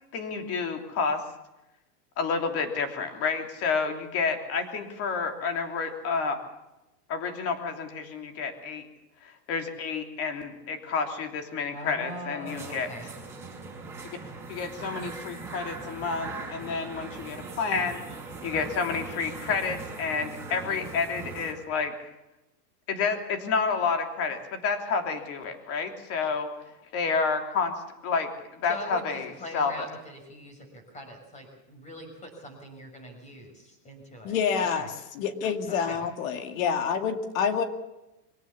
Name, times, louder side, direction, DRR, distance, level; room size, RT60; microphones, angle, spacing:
voice 1, 0.1-1.2 2.2-6.4 7.1-8.8 9.2-12.9 14.5-18.0 18.4-21.9 22.9-26.5 26.9-27.7 28.0-29.9, left 5 dB, 30° left, 5 dB, 3.2 m, -29 dB
voice 2, 11.7-13.1 28.7-30.5 30.9-34.9 35.7-36.0, equal, 15° left, 5 dB, 6.3 m, -42 dB
sound 1, 12.5-21.5, right 4 dB, 5° right, 5.7 m, -40 dB
voice 3, 34.2-37.6, left 6 dB, 55° left, 7 dB, 2.4 m, -27 dB
24.0 x 17.0 x 7.2 m, 0.95 s
supercardioid pair, 160°, 47 cm